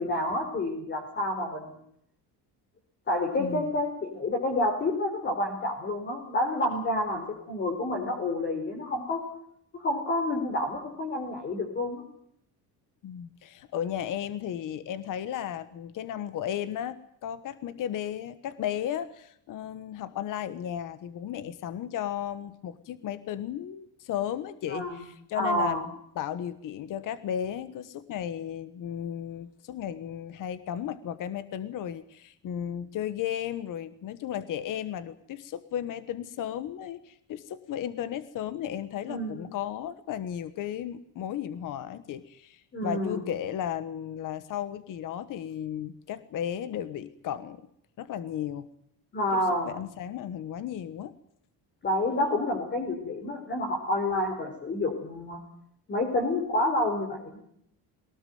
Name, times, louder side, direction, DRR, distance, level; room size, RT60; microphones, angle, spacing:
voice 1, 0.0-1.8 3.1-9.3 9.7-12.0 24.7-25.0 25.3-25.8 39.1-39.4 42.7-43.2 49.1-49.7 51.8-55.4 55.9-57.4, left 1 dB, 25° left, 2 dB, 4.5 m, -29 dB
voice 2, 3.4-3.7 13.0-25.8 26.1-47.6 48.0-48.7 49.3-51.1, left 10 dB, 50° left, 14 dB, 1.3 m, -34 dB
23.0 x 19.0 x 9.3 m, 0.70 s
cardioid pair, 175°, 41 cm